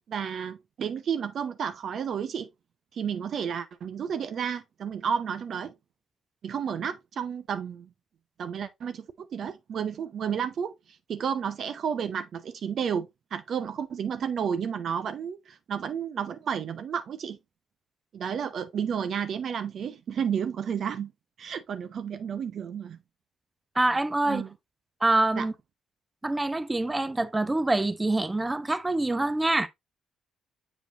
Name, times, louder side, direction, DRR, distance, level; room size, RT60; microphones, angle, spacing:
voice 1, 0.1-2.5 2.9-5.7 6.4-7.9 8.4-10.8 11.1-17.4 18.1-21.1 21.4-23.0 24.3-24.5 25.4-25.5, right 7 dB, 55° right, 0.6 m, -31 dB
voice 2, 23.8-24.4 25.0-25.5 26.2-29.7, right 2 dB, 15° right, 0.7 m, -25 dB
7.6 x 5.0 x 2.7 m
figure-of-eight pair, 45°, 0 cm